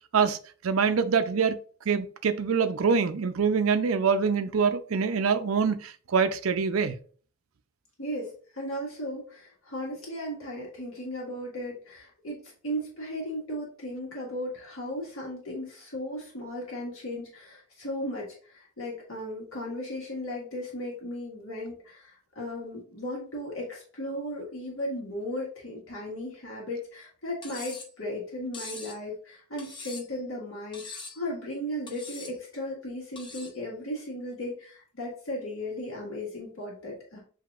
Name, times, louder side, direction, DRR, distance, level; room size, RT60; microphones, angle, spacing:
voice 1, 0.6-1.6 1.9-7.0, right 5 dB, 80° right, 0.5 m, -25 dB
voice 2, 8.0-37.2, left 1 dB, 80° left, 1.7 m, -36 dB
Cutlery silverware, 27.4-27.9 28.5-29.0 29.6-30.2 30.7-31.2 31.9-32.4 33.2-33.6, left 3 dB, 25° left, 0.7 m, -42 dB
7.6 x 2.8 x 2.4 m
head